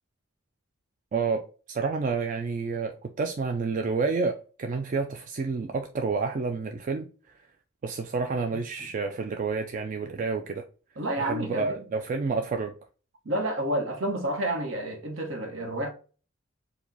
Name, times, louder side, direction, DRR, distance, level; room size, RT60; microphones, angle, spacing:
voice 1, 1.1-7.1 7.8-10.6 11.2-12.8, right 4 dB, 40° right, 0.3 m, -29 dB
voice 2, 11.0-11.9 13.2-15.9, right 1 dB, 65° right, 1.1 m, -30 dB
4.7 x 2.3 x 3.9 m
head